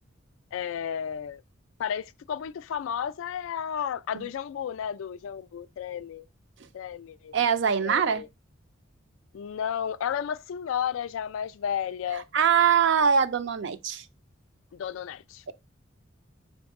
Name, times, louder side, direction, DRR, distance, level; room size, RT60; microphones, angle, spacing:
voice 1, 0.5-1.4 1.8-6.3 6.7-7.3 7.8-8.3 9.3-12.3 14.7-15.4, left 8 dB, 70° left, 0.3 m, -32 dB
voice 2, 7.3-8.2 12.3-14.0, right 7 dB, 60° right, 0.4 m, -22 dB
5.3 x 2.6 x 3.5 m
head